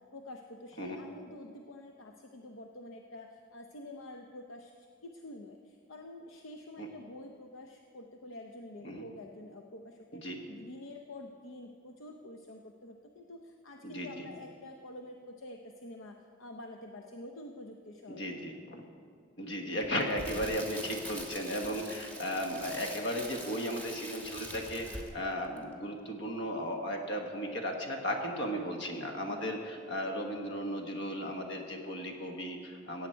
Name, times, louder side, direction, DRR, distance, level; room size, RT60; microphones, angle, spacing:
voice 1, 0.1-4.7 5.0-10.2 10.5-18.4 29.3-29.6, left 1 dB, 80° left, 3 dB, 0.7 m, -48 dB
voice 2, 10.1-10.4 13.8-14.3 18.1-18.9 19.4-33.1, equal, 60° left, 3 dB, 1.4 m, -35 dB
Crackle, 19.8-25.3 25.6-25.7, right 1 dB, 10° left, 1.2 m, -44 dB
15.5 x 8.9 x 4.5 m, 2.3 s
head